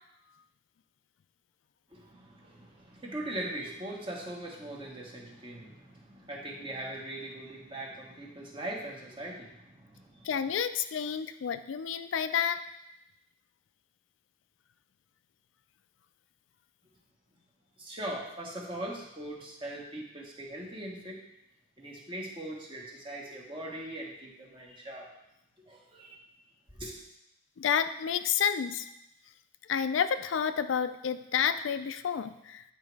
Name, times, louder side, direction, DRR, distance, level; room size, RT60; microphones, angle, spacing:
voice 1, 1.9-10.3 17.8-21.2 21.8-25.1 25.7-26.2 26.8-27.0, right 1 dB, 30° right, -2 dB, 1.2 m, -40 dB
voice 2, 10.3-12.6 27.6-28.8 29.7-32.6, left 7 dB, 90° left, 11 dB, 0.4 m, -30 dB
9.0 x 3.0 x 4.7 m, 0.83 s
head